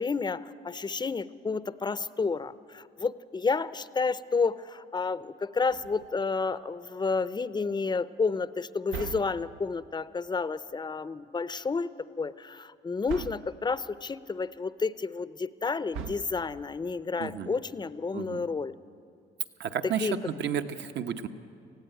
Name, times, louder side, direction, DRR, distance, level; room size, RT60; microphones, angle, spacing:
voice 1, 0.0-11.9 12.2-18.7 20.0-20.1, left 4 dB, 20° left, 16 dB, 0.6 m, -30 dB
sound 1, 5.7-6.4 8.9-9.8 13.1-13.7 15.9-16.8, right 6 dB, 85° right, 0.8 m, -40 dB
voice 2, 17.2-17.5 18.1-18.4 19.6-21.3, right 8 dB, 65° right, 8 dB, 1.0 m, -32 dB
19.0 x 15.0 x 9.1 m, 2.5 s
cardioid pair, 90°, 20 cm